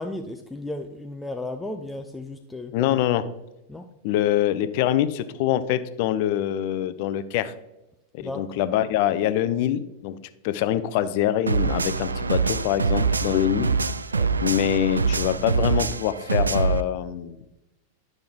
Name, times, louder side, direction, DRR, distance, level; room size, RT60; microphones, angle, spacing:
voice 1, 0.0-2.9 3.7-3.9 8.2-8.5 14.1-14.3, left 2 dB, 5° left, 4 dB, 0.6 m, -34 dB
voice 2, 2.7-3.3 4.0-7.5 8.1-10.2 10.4-13.7 14.4-17.4, left 11 dB, 50° left, 13 dB, 0.6 m, -24 dB
sound 1, 11.5-16.8, right 4 dB, 75° right, 0.3 m, -24 dB
10.5 x 6.4 x 3.6 m, 0.92 s
figure-of-eight pair, 90°, 0 cm